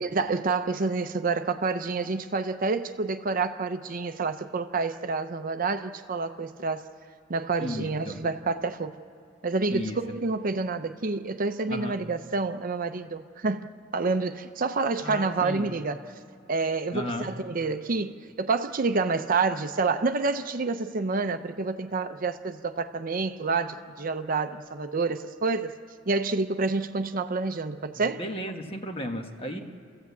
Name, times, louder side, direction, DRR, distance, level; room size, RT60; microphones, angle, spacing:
voice 1, 0.0-6.8 7.3-8.9 9.4-16.0 16.5-25.7 26.1-28.2, right 4 dB, 45° right, 0.6 m, -28 dB
voice 2, 7.6-8.3 9.7-10.2 11.7-12.0 15.0-15.7 16.9-17.3 27.9-29.6, left 1 dB, 30° left, 1.4 m, -34 dB
29.5 x 14.5 x 8.3 m
head